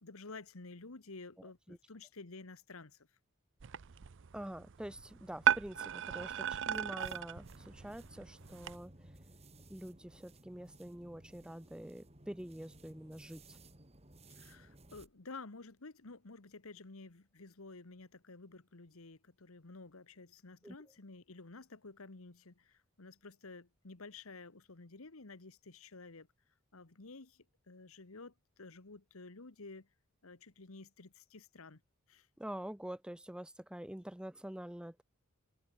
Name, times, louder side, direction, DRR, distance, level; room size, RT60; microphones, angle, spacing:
voice 1, 0.0-3.1 14.3-26.3 26.7-29.9 30.2-31.8 32.1-32.3, left 3 dB, 70° left, 1.4 m, -52 dB
sound 1, 3.6-8.8, right 9 dB, 60° right, 0.6 m, -36 dB
voice 2, 4.3-9.1 9.7-13.6 20.6-20.8 32.4-35.0, right 1 dB, 5° right, 0.5 m, -46 dB
sound 2, 6.7-15.1, right 2 dB, 30° right, 3.1 m, -58 dB
head